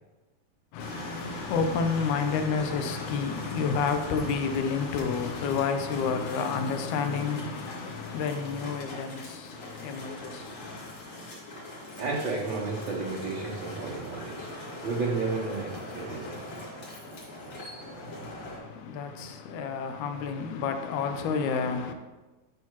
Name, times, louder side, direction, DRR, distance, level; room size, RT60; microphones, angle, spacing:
voice 1, 0.7-11.2 18.0-21.9, left 5 dB, 80° left, 2.1 m, -30 dB
sound 1, 0.8-18.6, left 1 dB, 60° left, 3.1 m, -42 dB
voice 2, 12.0-16.5 18.0-18.2, right 3 dB, 60° right, 1.3 m, -32 dB
11.5 x 5.8 x 3.0 m
omnidirectional pair, 3.5 m